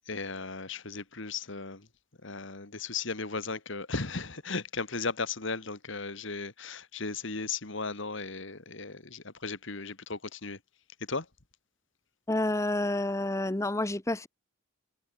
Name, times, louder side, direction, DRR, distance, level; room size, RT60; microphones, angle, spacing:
voice 1, 0.1-1.9 2.2-10.6 11.0-11.3, left 4 dB, 60° left, 2.0 m, -36 dB
voice 2, 12.3-14.3, left 2 dB, 15° left, 0.7 m, -29 dB
head